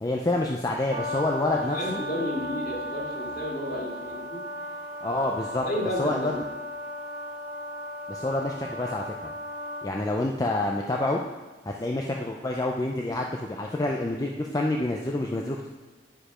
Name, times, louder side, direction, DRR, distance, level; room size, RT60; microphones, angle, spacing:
voice 1, 0.0-2.0 5.0-5.6 6.0-6.3 8.1-9.3 9.8-11.2 11.6-15.7, left 2 dB, 20° left, 0 dB, 0.4 m, -28 dB
Brass instrument, 0.9-9.9, equal, 35° right, 2.3 m, -36 dB
voice 2, 1.5-4.4 5.6-6.4, left 1 dB, 50° left, -4 dB, 2.4 m, -32 dB
10.0 x 5.1 x 5.0 m, 1.2 s
head